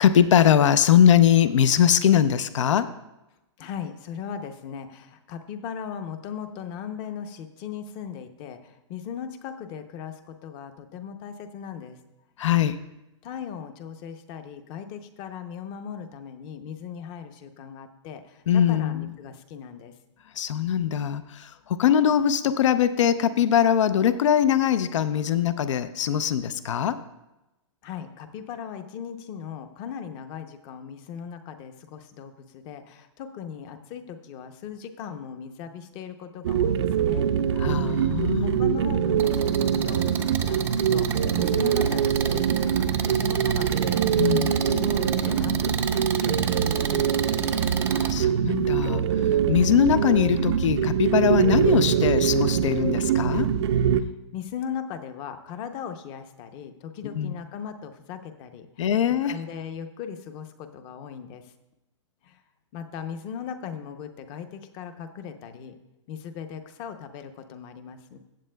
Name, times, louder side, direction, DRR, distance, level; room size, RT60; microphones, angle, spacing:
voice 1, 0.0-2.9 12.4-12.8 18.5-19.1 20.4-27.0 37.6-38.6 44.2-44.5 47.9-49.0 49.5-53.5 57.2-57.3 58.8-59.3, left 9 dB, 75° left, 13 dB, 0.6 m, -21 dB
voice 2, 3.6-12.0 13.2-19.9 27.8-37.3 37.9-38.1 38.4-41.1 41.3-44.0 44.4-47.6 54.0-61.5 62.2-62.4 62.7-65.8 66.1-68.2, left 7 dB, 30° left, 9 dB, 0.7 m, -38 dB
sound 1, 36.4-54.0, right 8 dB, 60° right, 0.5 m, -23 dB
sound 2, 39.2-48.1, right 7 dB, 15° right, 0.5 m, -33 dB
15.0 x 8.3 x 2.2 m, 0.95 s
hypercardioid pair, 155°, 16 cm